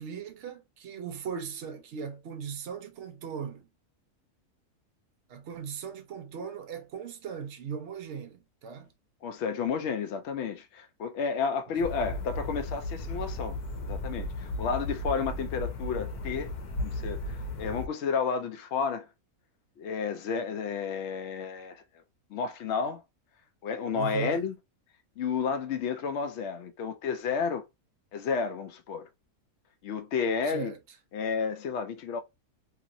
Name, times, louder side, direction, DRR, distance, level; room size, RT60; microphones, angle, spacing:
voice 1, 0.0-3.7 5.3-8.9 23.9-24.4 30.5-30.8, right 7 dB, 60° right, 0.8 m, -38 dB
voice 2, 9.2-13.6 13.8-16.5 16.8-19.1 19.8-21.8 22.3-23.0 23.6-24.5 25.2-27.6 28.1-29.1 29.8-30.7 31.1-32.2, left 6 dB, 60° left, 0.7 m, -31 dB
sound 1, 11.8-17.9, left 1 dB, 85° left, 1.3 m, -35 dB
2.9 x 2.9 x 2.6 m
omnidirectional pair, 1.6 m